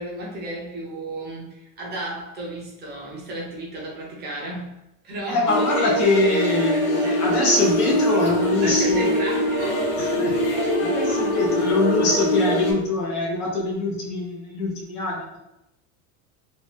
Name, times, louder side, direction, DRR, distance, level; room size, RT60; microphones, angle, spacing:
voice 1, 0.0-4.8 5.0-6.0 7.0-7.2 8.6-9.9, right 1 dB, 25° right, -3 dB, 0.6 m, -33 dB
voice 2, 5.3-9.1 10.0-10.3 10.8-15.4, left 2 dB, 80° left, -2 dB, 1.5 m, -23 dB
sound 1, 5.5-12.7, left 1 dB, 50° left, 1.3 m, -23 dB
sound 2, 7.5-12.8, left 1 dB, 15° left, 0.6 m, -34 dB
2.9 x 2.9 x 3.3 m, 0.86 s
supercardioid pair, 160°, 43 cm